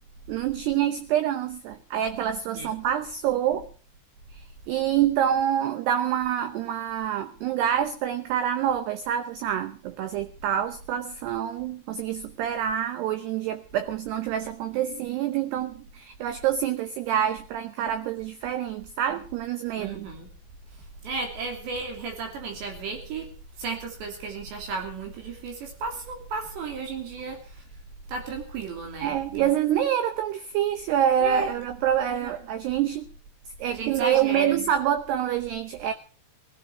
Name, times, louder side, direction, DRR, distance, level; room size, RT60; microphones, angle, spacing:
voice 1, 0.3-3.7 4.3-20.1 29.0-33.1 33.6-35.9, right 10 dB, 85° right, 10 dB, 2.3 m, -26 dB
voice 2, 19.8-20.3 21.0-23.3 23.6-27.6 28.1-29.5 31.2-31.5 32.2-32.3 33.7-34.7, right 4 dB, 60° right, 3 dB, 4.9 m, -34 dB
18.0 x 15.5 x 4.7 m, 0.39 s
omnidirectional pair, 5.9 m